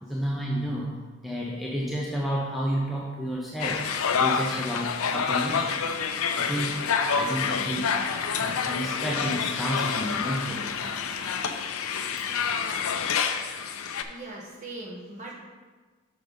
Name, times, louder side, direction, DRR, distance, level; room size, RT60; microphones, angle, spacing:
voice 1, 0.0-3.8 4.1-5.8 6.4-6.9 7.2-8.0 8.3-11.0, equal, ahead, -4 dB, 0.6 m, -31 dB
sound 1, 3.6-14.0, left 6 dB, 85° left, 0.5 m, -28 dB
voice 2, 14.1-15.3, right 2 dB, 35° right, -3 dB, 1.5 m, -40 dB
6.4 x 5.3 x 5.1 m, 1.3 s
head